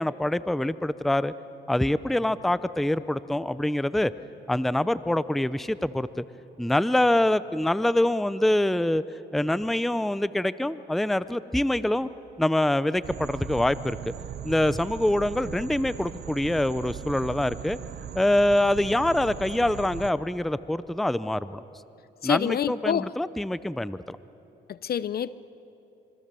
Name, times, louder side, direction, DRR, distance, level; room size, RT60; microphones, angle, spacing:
voice 1, 0.0-1.3 1.7-4.1 4.5-6.2 6.6-9.0 9.3-12.1 12.4-14.1 14.4-17.8 18.1-21.7 22.2-24.2, left 1 dB, ahead, 0.6 m, -25 dB
sound 1, 13.0-20.1, right 9 dB, 55° right, 0.9 m, -39 dB
voice 2, 22.2-23.1 24.7-25.3, left 9 dB, 50° left, 0.7 m, -27 dB
26.5 x 24.5 x 6.9 m
cardioid pair, 90°, 20 cm